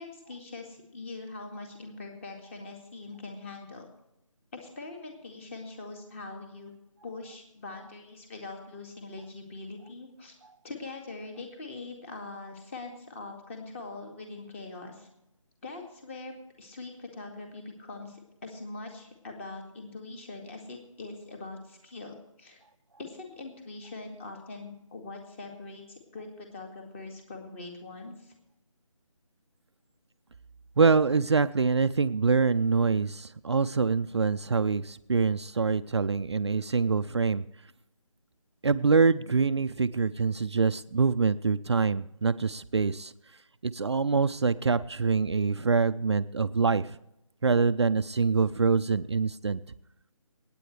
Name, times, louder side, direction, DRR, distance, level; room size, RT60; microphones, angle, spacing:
voice 1, 0.0-3.9 4.5-6.7 7.0-10.4 10.6-15.1 15.6-22.6 23.0-28.3, left 3 dB, 25° left, 3 dB, 2.1 m, -42 dB
voice 2, 30.8-37.4 38.6-43.1 43.6-47.0 47.4-49.6, right 4 dB, 50° right, 11 dB, 0.5 m, -25 dB
27.0 x 9.1 x 3.2 m, 0.85 s
figure-of-eight pair, 160°, 18 cm